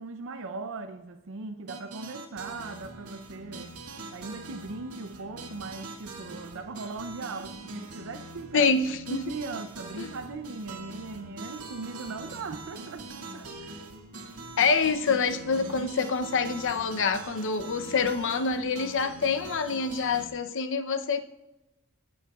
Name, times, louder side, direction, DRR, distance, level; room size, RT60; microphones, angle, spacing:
voice 1, 0.0-3.7 4.1-8.7 9.1-13.1 13.3-13.8, right 3 dB, 65° right, 8 dB, 0.6 m, -39 dB
sound 1, 1.7-20.3, right 2 dB, 85° right, 1.9 m, -43 dB
voice 2, 8.5-9.2 10.0-10.1 14.6-21.2, left 5 dB, 60° left, 9 dB, 0.7 m, -26 dB
24.5 x 8.5 x 2.4 m, 0.99 s
head